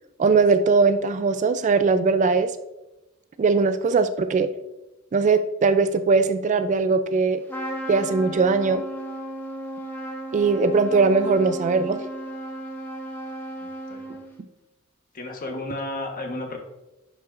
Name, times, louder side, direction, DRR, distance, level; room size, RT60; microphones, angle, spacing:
voice 1, 0.2-2.5 3.4-4.5 5.1-7.4 7.9-8.8 10.3-12.0, right 4 dB, 35° right, 11 dB, 0.3 m, -20 dB
Trumpet, 7.5-14.4, right 1 dB, 10° left, 1.0 m, -35 dB
voice 2, 13.6-14.2 15.1-16.6, left 2 dB, 45° left, 3 dB, 1.2 m, -33 dB
10.5 x 5.6 x 2.5 m, 0.98 s
head